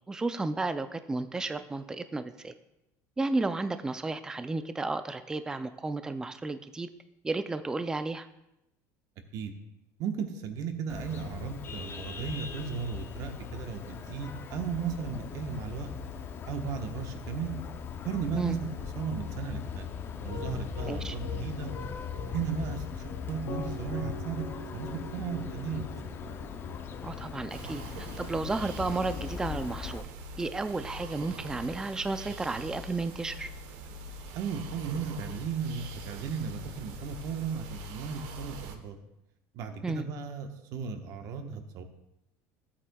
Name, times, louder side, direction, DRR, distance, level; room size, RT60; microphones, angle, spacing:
voice 1, 0.1-2.5 3.2-6.9 7.2-8.3 18.3-18.6 20.8-21.2 27.0-30.1 30.4-33.5 39.8-40.0, right 3 dB, 10° right, 10 dB, 0.4 m, -33 dB
voice 2, 10.0-15.9 16.5-17.5 18.0-19.9 20.2-21.7 22.2-24.5 24.7-26.1 34.3-39.0 39.5-41.8, right 6 dB, 55° right, 6 dB, 1.1 m, -35 dB
Vehicle horn car horn honking, 10.9-30.0, left 7 dB, 30° left, 0.6 m, -40 dB
Piano, 20.3-26.7, left 2 dB, 80° left, 3.0 m, -40 dB
sound 1, 27.5-38.8, right 1 dB, 70° right, 1.0 m, -43 dB
15.5 x 8.5 x 2.3 m, 0.89 s
cardioid pair, 150°, 7 cm